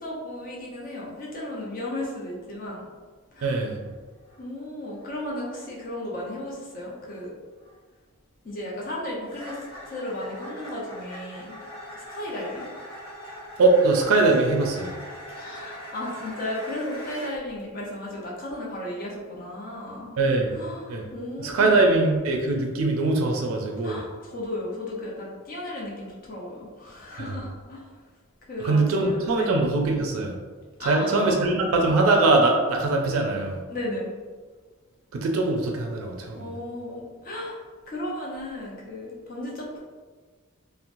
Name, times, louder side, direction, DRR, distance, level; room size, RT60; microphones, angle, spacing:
voice 1, 0.0-2.9 3.3-3.5 4.4-7.3 8.4-9.6 9.8-11.6 11.9-12.7 15.3-20.1 20.5-21.9 23.8-27.8 28.5-29.5 30.8-31.4 33.7-34.1 36.4-37.6 37.9-39.8, left 1 dB, 45° left, -4 dB, 0.6 m, -35 dB
voice 2, 3.4-3.8 13.6-14.9 20.2-20.6 20.9-21.0 21.4-24.0 27.2-27.3 28.6-30.3 30.8-33.6 35.1-36.5, right 2 dB, 90° right, 1 dB, 0.4 m, -22 dB
sound 1, 3.6-3.8 4.1-4.5 4.9-5.2 5.5-5.8 6.2-6.4 7.0-7.2 7.6-7.8 9.2-17.4, equal, 80° left, 1.0 m, -42 dB
2.9 x 2.0 x 2.5 m, 1.4 s
head